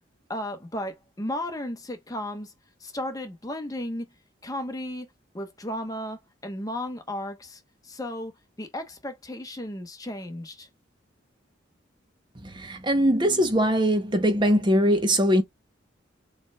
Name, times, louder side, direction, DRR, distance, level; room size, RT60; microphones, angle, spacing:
voice 1, 0.3-2.5 2.8-4.1 4.4-5.1 5.3-10.7, left 1 dB, 20° left, 1.0 m, -34 dB
voice 2, 12.4-15.4, equal, 25° right, 0.8 m, -21 dB
6.9 x 3.2 x 2.3 m
head